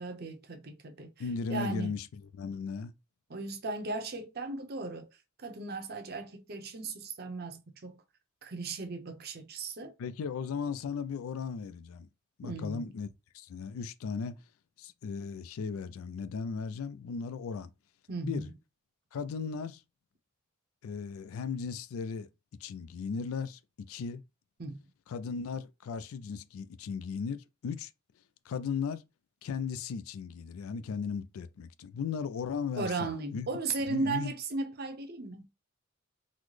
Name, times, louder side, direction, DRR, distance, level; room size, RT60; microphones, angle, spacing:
voice 1, 0.0-1.1 1.5-1.9 3.3-5.1 5.4-8.0 8.4-9.9 12.4-12.8 18.1-18.5 24.6-24.8 32.8-35.4, right 3 dB, 50° right, 0.6 m, -36 dB
voice 2, 1.2-2.9 10.0-12.1 12.4-13.1 13.3-14.4 14.8-17.7 18.2-18.5 19.1-19.8 20.8-22.3 22.6-24.2 25.1-27.9 28.5-29.0 29.4-33.5 33.9-34.3, left 5 dB, 85° left, 0.4 m, -36 dB
3.9 x 2.0 x 3.1 m
head